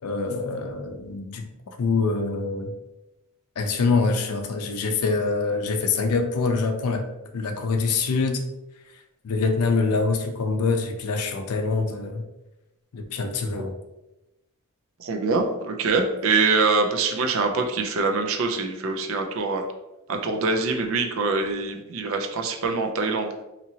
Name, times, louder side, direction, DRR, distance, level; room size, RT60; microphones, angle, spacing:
voice 1, 0.0-1.5 1.8-2.7 3.6-7.0 7.3-8.4 9.2-12.2 12.9-13.7, left 4 dB, 85° left, 4 dB, 0.5 m, -25 dB
voice 2, 15.0-19.6 20.1-23.3, right 4 dB, 65° right, 4 dB, 0.4 m, -24 dB
2.8 x 2.7 x 2.7 m, 0.96 s
head